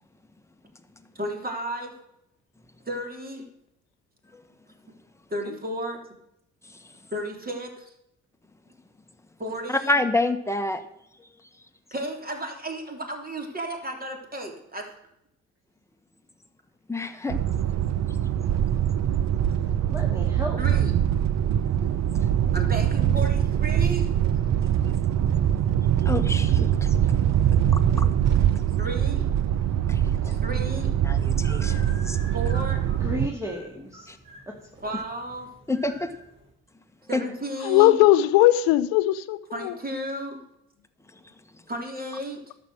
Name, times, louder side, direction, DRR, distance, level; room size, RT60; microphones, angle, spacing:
voice 1, 1.1-1.9 2.8-3.5 5.3-6.0 7.1-7.9 9.4-10.0 11.9-14.9 20.6-20.9 22.5-24.1 28.8-29.3 30.4-30.9 32.3-32.8 34.8-35.5 37.1-38.0 39.5-40.4 41.7-42.4, right 1 dB, 25° right, 3.3 m, -33 dB
voice 2, 9.9-10.8 16.9-17.4 26.0-26.9 27.7-28.1 29.9-30.0 31.0-32.2 34.1-34.2 35.7-36.1 37.1-37.2, left 2 dB, 10° left, 1.4 m, -27 dB
sound 1, 17.3-33.3, right 10 dB, 50° right, 0.7 m, -23 dB
voice 3, 19.9-20.6 30.2-30.4 33.0-34.1 34.5-34.6, equal, 10° right, 2.2 m, -33 dB
sound 2, 31.3-36.5, right 1 dB, 65° right, 5.4 m, -47 dB
voice 4, 37.6-39.7, left 14 dB, 70° left, 0.7 m, -19 dB
11.5 x 7.5 x 6.6 m
hypercardioid pair, 50°, 35 cm